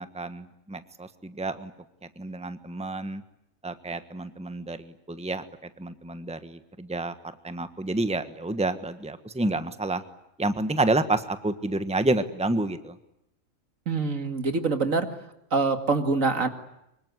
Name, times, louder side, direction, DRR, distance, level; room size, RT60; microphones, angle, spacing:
voice 1, 0.0-1.7 2.2-3.2 3.6-5.4 5.8-7.1 7.4-10.0 10.4-13.0, right 2 dB, 5° right, 11 dB, 1.3 m, -29 dB
voice 2, 13.9-15.1 15.5-16.5, right 4 dB, 80° right, 8 dB, 2.7 m, -25 dB
25.0 x 24.0 x 9.6 m, 0.83 s
omnidirectional pair, 1.4 m